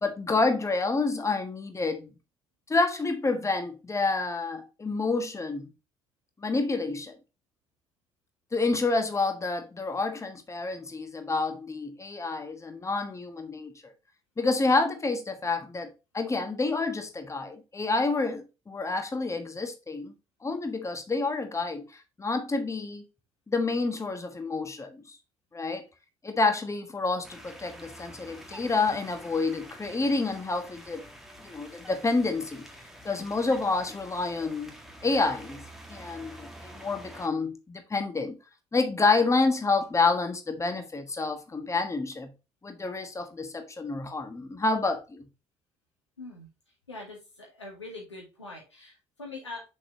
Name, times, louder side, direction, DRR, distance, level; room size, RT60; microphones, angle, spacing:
voice 1, 0.0-2.1 2.7-5.7 6.4-7.2 8.5-13.9 14.4-15.9 16.1-20.1 20.4-21.9 22.2-23.0 23.5-25.2 25.5-25.8 26.2-31.1 31.4-32.6 33.0-34.7 35.0-38.4 38.7-42.3 42.6-45.3, left 3 dB, 20° left, 1.3 m, -28 dB
sound 1, 27.2-37.3, equal, ahead, 1.7 m, -47 dB
voice 2, 46.2-46.5 46.9-49.6, left 2 dB, 90° left, 2.0 m, -43 dB
6.4 x 5.4 x 2.8 m
figure-of-eight pair, 45°, 15 cm